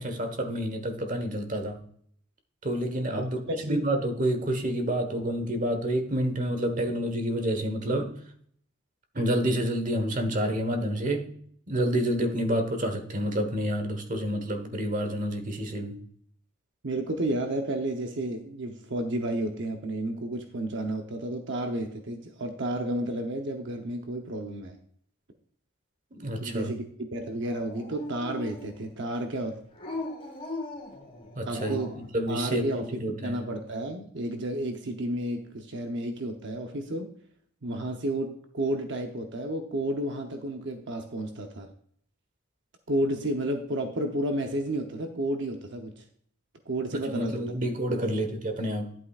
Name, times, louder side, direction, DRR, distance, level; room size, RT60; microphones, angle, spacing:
voice 1, 0.0-1.8 2.6-8.2 9.1-11.3 11.7-16.0 26.1-26.7 31.3-33.4 46.9-48.9, right 1 dB, 35° right, 1.2 m, -29 dB
voice 2, 3.1-3.8 16.8-24.8 26.4-26.8 27.1-29.6 31.5-31.9 32.3-32.8 33.2-37.1 37.6-41.7 42.9-46.0 46.7-47.4 48.0-48.2, right 1 dB, 55° right, 0.8 m, -31 dB
Dog, 27.4-28.9 29.7-32.1, left 2 dB, 25° left, 1.6 m, -39 dB
10.5 x 8.6 x 2.4 m
head